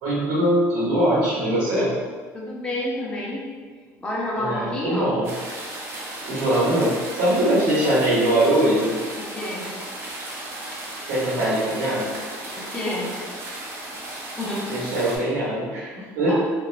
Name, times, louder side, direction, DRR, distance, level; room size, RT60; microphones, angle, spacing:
voice 1, 0.0-1.9 4.4-5.3 6.2-9.0 11.1-12.1 14.7-16.3, right 1 dB, 85° right, -8 dB, 0.9 m, -22 dB
voice 2, 2.3-3.4 4.0-5.2 9.1-9.7 12.6-13.2 14.4-14.8 16.3-16.4, left 1 dB, 15° left, -5 dB, 0.6 m, -29 dB
waterfall in the forest front, 5.2-15.2, right 1 dB, 40° right, 0.7 m, -35 dB
3.0 x 2.3 x 2.4 m, 1.5 s
cardioid pair, 115°, 7 cm